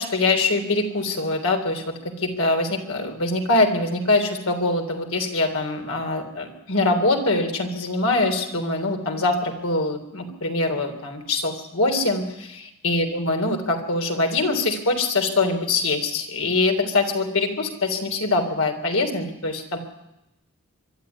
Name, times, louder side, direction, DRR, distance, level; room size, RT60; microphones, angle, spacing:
voice 1, 0.0-19.8, left 2 dB, 75° left, 4 dB, 3.6 m, -23 dB
24.0 x 12.0 x 9.5 m, 0.89 s
head